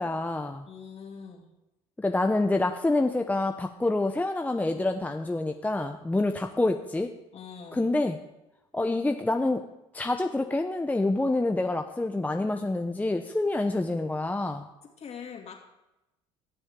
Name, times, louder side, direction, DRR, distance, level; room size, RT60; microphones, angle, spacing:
voice 1, 0.0-0.7 2.0-7.1 7.7-8.2 8.7-9.6 9.9-14.7, left 2 dB, 10° left, 5 dB, 0.7 m, -27 dB
voice 2, 0.7-1.5 6.2-6.7 7.3-7.9 15.0-15.5, left 6 dB, 45° left, 1 dB, 2.7 m, -43 dB
19.0 x 7.1 x 3.7 m, 0.94 s
supercardioid pair, 80°, 15 cm